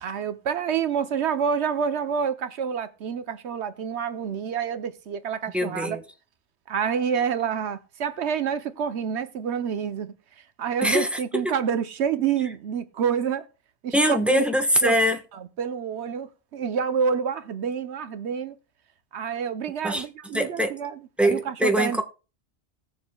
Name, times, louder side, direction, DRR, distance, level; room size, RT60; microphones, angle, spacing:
voice 1, 0.0-6.0 6.7-10.1 10.6-13.5 13.8-14.4 14.8-15.0 15.3-18.6 19.1-21.0 21.3-22.0, right 7 dB, 75° right, 1.0 m, -28 dB
voice 2, 5.5-6.0 10.8-11.5 13.9-15.2 19.8-20.0 20.3-20.8 21.2-22.0, equal, ahead, 1.0 m, -23 dB
19.0 x 7.1 x 2.2 m
omnidirectional pair, 1.2 m